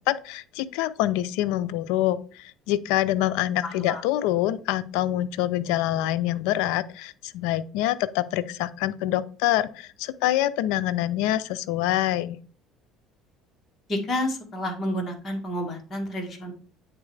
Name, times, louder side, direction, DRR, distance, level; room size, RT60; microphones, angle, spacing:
voice 1, 0.1-12.4, left 14 dB, 85° left, 15 dB, 0.4 m, -26 dB
voice 2, 3.6-4.0 13.9-16.5, left 1 dB, 30° left, 2 dB, 1.8 m, -30 dB
8.8 x 4.0 x 3.2 m, 0.43 s
cardioid pair, 115°, 0 cm